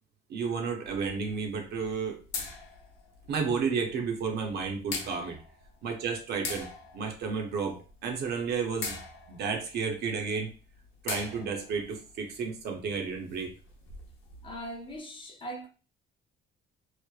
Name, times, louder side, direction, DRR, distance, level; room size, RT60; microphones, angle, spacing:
voice 1, 0.3-2.2 3.3-5.4 5.8-6.7 6.9-9.0 9.3-10.5 11.0-13.5, right 5 dB, 50° right, 0.6 m, -32 dB
sound 1, 0.8-15.0, left 4 dB, 75° left, 0.8 m, -43 dB
voice 2, 14.4-15.7, right 1 dB, 25° left, 0.5 m, -40 dB
3.0 x 2.0 x 2.2 m
cardioid pair, 165°, 21 cm